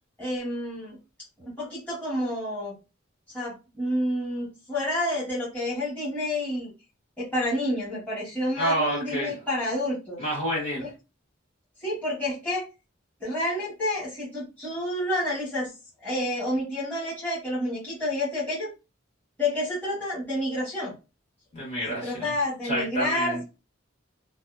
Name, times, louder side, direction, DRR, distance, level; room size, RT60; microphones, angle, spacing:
voice 1, 0.2-1.0 1.5-2.7 3.3-6.7 7.2-10.2 10.8-10.9 11.8-12.6 13.2-15.7 16.0-18.7 19.4-20.9 22.0-23.4, left 1 dB, 5° left, -10 dB, 1.3 m, -29 dB
voice 2, 8.6-9.3 10.2-10.8 21.5-22.3 22.6-23.4, right 1 dB, 35° left, -6 dB, 1.4 m, -28 dB
2.7 x 2.3 x 2.3 m, 0.30 s
head